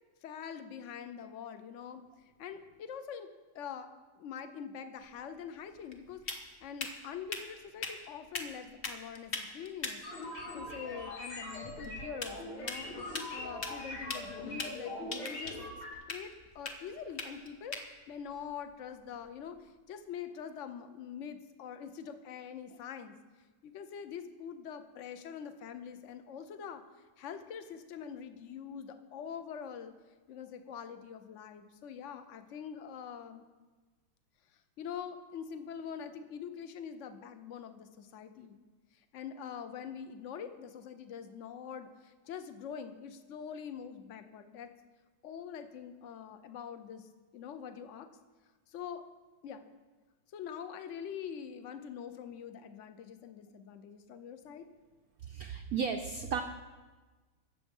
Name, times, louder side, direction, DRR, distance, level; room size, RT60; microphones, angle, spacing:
voice 1, 0.2-3.3 3.5-3.9 4.2-12.9 13.3-15.6 16.1-17.8 18.1-23.2 23.6-26.8 27.2-29.9 30.3-33.4 34.5-38.6 38.9-44.7 45.2-48.1 48.7-49.0 49.4-49.6 50.3-54.7, left 7 dB, 60° left, 9 dB, 0.8 m, -44 dB
sound 1, 5.0-19.7, left 3 dB, 35° left, 1.1 m, -44 dB
sound 2, 10.0-15.9, left 1 dB, 90° left, 4.1 m, -42 dB
voice 2, 55.2-56.4, right 6 dB, 70° right, 5 dB, 0.8 m, -34 dB
20.0 x 7.6 x 5.4 m, 1.3 s
omnidirectional pair, 2.3 m